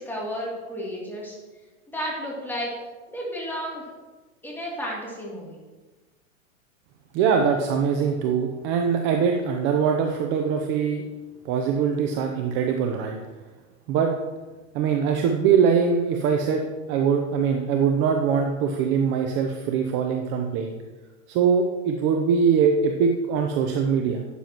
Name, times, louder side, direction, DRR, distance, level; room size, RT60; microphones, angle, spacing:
voice 1, 0.0-1.4 1.9-2.7 3.1-3.8 4.4-5.6, equal, 5° left, -5 dB, 2.8 m, -32 dB
voice 2, 7.1-11.0 11.4-13.2 13.9-14.1 14.7-20.7 21.3-24.3, right 6 dB, 30° right, 3 dB, 0.7 m, -22 dB
12.5 x 9.2 x 3.0 m, 1.2 s
hypercardioid pair, 140°, 40 cm